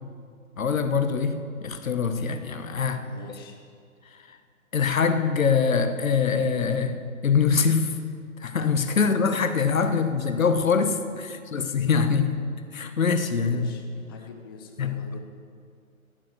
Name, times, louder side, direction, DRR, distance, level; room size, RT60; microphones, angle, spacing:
voice 1, 0.6-3.0 4.7-7.0 7.2-7.9 8.4-12.5 12.7-13.7 14.8-15.2, left 5 dB, 70° left, 9 dB, 1.2 m, -24 dB
voice 2, 3.0-3.6 9.9-10.0 11.3-11.4 13.4-15.2, left 5 dB, 15° left, 2 dB, 0.5 m, -46 dB
14.5 x 7.5 x 6.7 m, 2.3 s
figure-of-eight pair, 135°, 43 cm